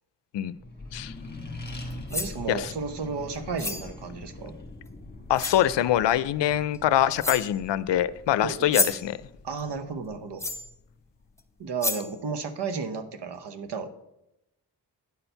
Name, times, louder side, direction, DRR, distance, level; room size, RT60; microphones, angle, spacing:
Accelerating revving vroom, 0.6-11.5, left 2 dB, 25° left, 1.6 m, -43 dB
sound 1, 1.9-2.4 3.6-3.9 4.9-5.0 5.3-5.7 6.7-6.8 7.2-7.6 8.5-9.1 10.4-10.7 11.4-11.5 11.8-12.2, left 2 dB, 5° left, 0.8 m, -30 dB
voice 1, 2.1-4.5 8.4-9.0 9.4-10.4 11.6-13.9, right 5 dB, 75° right, 1.0 m, -33 dB
voice 2, 5.3-9.2, left 12 dB, 85° left, 0.5 m, -24 dB
9.6 x 4.4 x 6.7 m
wide cardioid pair, 95°, 42 cm